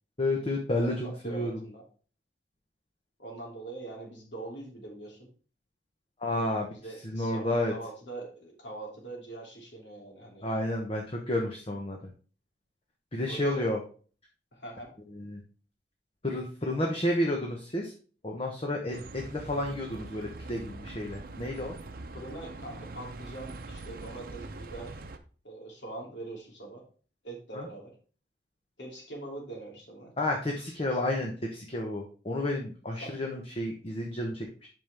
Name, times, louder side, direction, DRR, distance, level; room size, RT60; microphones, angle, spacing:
voice 1, 0.2-1.5 6.2-6.7 7.0-7.7 10.4-12.0 13.1-13.8 15.1-15.4 16.2-17.9 18.2-21.7 27.5-27.7 30.2-34.7, left 1 dB, 30° left, 0 dB, 1.1 m, -31 dB
voice 2, 0.8-1.8 3.2-5.2 6.3-10.5 13.3-13.7 14.5-14.9 22.1-25.0 25.4-26.8 27.2-27.9 28.8-30.1 30.9-31.0 33.0-33.1, right 2 dB, 75° left, 0 dB, 3.0 m, -43 dB
Bus, 18.9-25.2, right 2 dB, 50° right, 0.7 m, -43 dB
8.5 x 5.4 x 3.5 m, 0.39 s
head